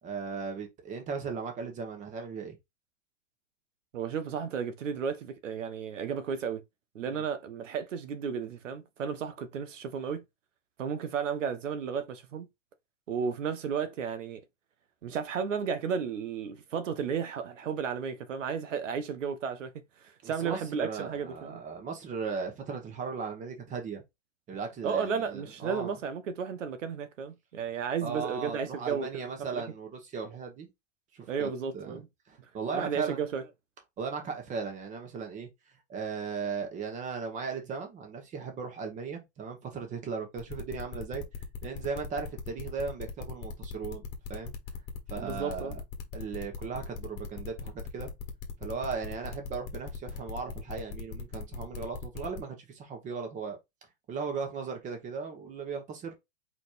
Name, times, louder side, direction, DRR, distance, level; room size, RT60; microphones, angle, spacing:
voice 1, 0.0-2.6 7.1-7.2 20.2-24.0 24.5-26.0 28.0-30.7 31.1-32.0 32.3-33.2 34.0-35.5 35.9-41.2 41.6-44.5 45.1-45.8 46.1-48.1 48.6-53.6 54.1-56.1, right 5 dB, 20° right, 1.5 m, -37 dB
voice 2, 3.9-6.6 6.9-10.2 10.8-12.5 13.1-14.4 15.0-19.7 20.0-21.6 24.8-29.1 29.4-29.6 31.3-32.1 32.7-33.4 45.2-45.7, right 6 dB, 90° right, 1.4 m, -33 dB
sound 1, 40.4-52.4, left 5 dB, 25° left, 1.5 m, -39 dB
4.8 x 4.2 x 2.6 m
supercardioid pair, 155°, 36 cm